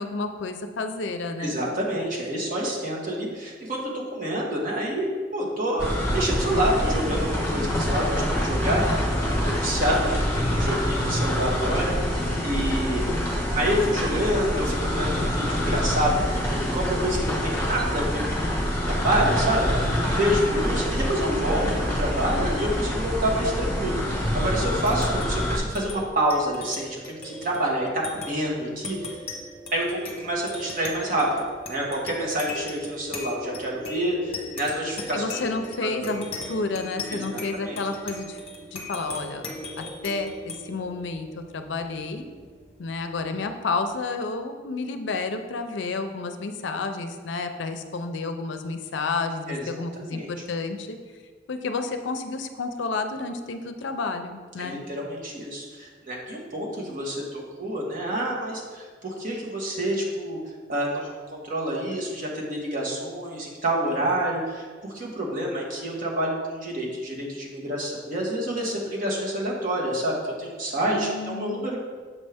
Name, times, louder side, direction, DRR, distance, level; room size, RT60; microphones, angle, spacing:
voice 1, 0.0-1.6 35.1-38.4 38.7-39.4 39.8-42.3 42.8-51.0 51.5-54.8 70.9-71.7, left 3 dB, 70° left, 7 dB, 0.5 m, -30 dB
voice 2, 1.4-13.1 13.5-16.2 16.5-18.2 18.8-29.1 29.7-31.4 31.7-35.4 35.8-36.2 37.1-37.8 49.5-49.6 50.0-50.3 54.6-60.4 60.7-61.1 61.4-64.7 64.9-71.8, right 1 dB, 45° right, -3 dB, 1.4 m, -28 dB
sound 1, 5.8-25.6, equal, 15° left, 1.4 m, -26 dB
sound 2, 24.6-43.5, left 1 dB, 30° left, 1.0 m, -39 dB
7.2 x 5.3 x 3.5 m, 1.5 s
head